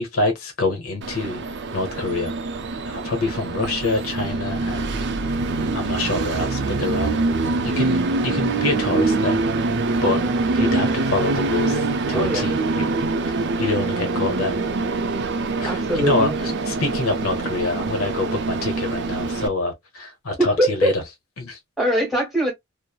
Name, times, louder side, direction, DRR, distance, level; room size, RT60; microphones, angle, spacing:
voice 1, 0.0-1.4 1.7-2.3 2.9-5.0 5.7-7.1 7.7-9.4 10.0-10.2 10.5-12.8 13.3-14.6 15.6-20.9 21.4-21.6, left 3 dB, 70° left, 0.9 m, -26 dB
Train, 1.0-19.5, right 3 dB, 55° right, 0.5 m, -24 dB
voice 2, 10.0-10.3 12.1-12.6 15.6-16.4 20.4-20.9 21.8-22.5, right 1 dB, ahead, 1.3 m, -22 dB
3.0 x 2.0 x 2.2 m
head